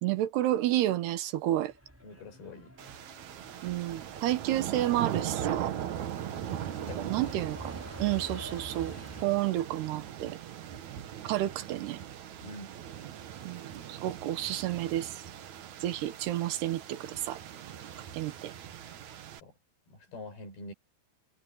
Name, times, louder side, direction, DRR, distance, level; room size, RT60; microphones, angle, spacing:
voice 1, 0.0-1.7 3.6-5.7 7.0-9.0 9.2-10.4 11.2-12.0 13.4-15.2 15.8-17.4 18.1-18.5, right 14 dB, 90° right, 3.3 m, -30 dB
Truck, 1.7-9.2, equal, 5° right, 4.7 m, -48 dB
voice 2, 2.0-2.7 6.9-7.1 12.4-12.7 19.4-19.5 19.9-20.7, left 2 dB, 70° left, 7.8 m, -45 dB
sound 1, 2.8-19.4, right 10 dB, 60° right, 2.3 m, -40 dB
omnidirectional pair, 4.6 m